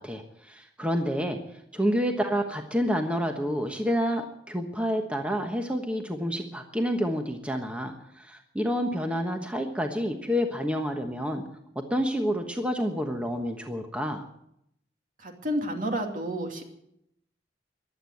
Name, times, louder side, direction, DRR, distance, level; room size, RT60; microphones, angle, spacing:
voice 1, 0.0-1.4 1.7-11.4 11.9-14.3, equal, 5° right, 3 dB, 1.2 m, -29 dB
voice 2, 15.2-16.6, right 1 dB, 50° right, 3 dB, 2.6 m, -30 dB
15.5 x 11.5 x 7.8 m, 0.76 s
head